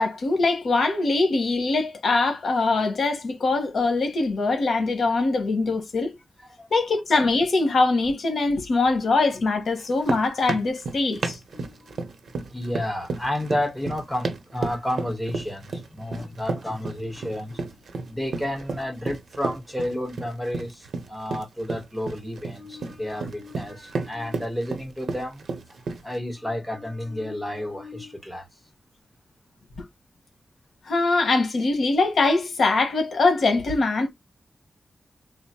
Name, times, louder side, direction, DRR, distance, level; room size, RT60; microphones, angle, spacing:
voice 1, 0.0-6.1 6.7-11.4 30.8-34.1, left 3 dB, 70° left, 1.1 m, -22 dB
sound 1, 9.8-26.2, right 3 dB, 80° right, 0.7 m, -32 dB
voice 2, 11.5-25.8 26.0-28.5, left 1 dB, ahead, 1.1 m, -31 dB
3.6 x 2.0 x 4.3 m
wide cardioid pair, 165°, 0 cm